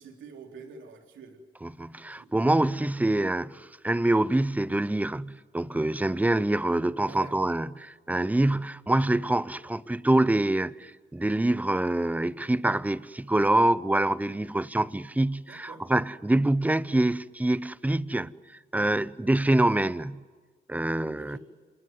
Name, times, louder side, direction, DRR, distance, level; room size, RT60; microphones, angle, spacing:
voice 1, 0.0-1.4 2.1-2.3 7.1-7.3 15.5-15.9 21.1-21.4, right 5 dB, 75° right, 3.8 m, -46 dB
voice 2, 1.6-18.3 18.7-20.2 20.7-21.4, right 1 dB, 10° right, 0.7 m, -25 dB
27.0 x 20.5 x 9.4 m
cardioid pair, 90°, 20 cm